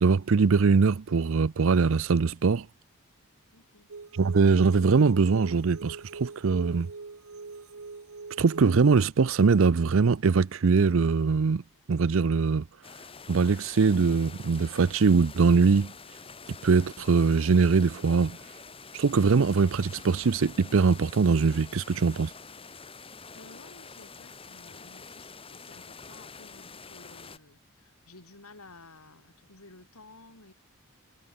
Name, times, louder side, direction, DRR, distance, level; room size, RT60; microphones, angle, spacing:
voice 1, 0.0-2.7 4.1-6.9 8.4-11.6 11.9-12.6 13.3-15.9 16.6-18.4 18.9-22.3, right 4 dB, 65° right, 0.5 m, -22 dB
voice 2, 3.5-3.9 22.8-30.5, left 2 dB, 85° left, 4.9 m, -54 dB
sound 1, 3.9-9.0, right 4 dB, 90° right, 1.1 m, -43 dB
sound 2, 12.8-27.4, left 5 dB, 25° left, 3.9 m, -47 dB
head